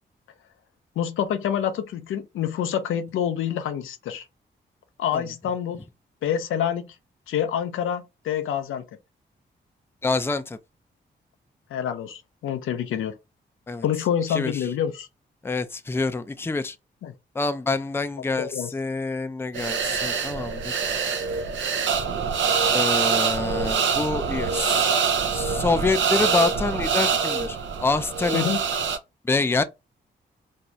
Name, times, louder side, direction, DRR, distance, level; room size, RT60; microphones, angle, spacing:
voice 1, 1.0-4.3 5.0-5.8 6.2-6.9 7.3-8.8 11.7-13.1 13.8-15.1 17.0-17.1 18.4-18.7 28.3-28.6, left 9 dB, 80° left, 0.5 m, -27 dB
voice 2, 10.0-10.6 13.7-13.8 14.3-14.6 15.4-16.8 17.3-20.8 22.7-24.9 25.3-28.5 29.2-29.6, left 3 dB, 10° left, 0.4 m, -26 dB
sound 1, 19.5-29.0, right 6 dB, 65° right, 0.5 m, -25 dB
2.6 x 2.3 x 2.9 m
supercardioid pair, 45°, 21 cm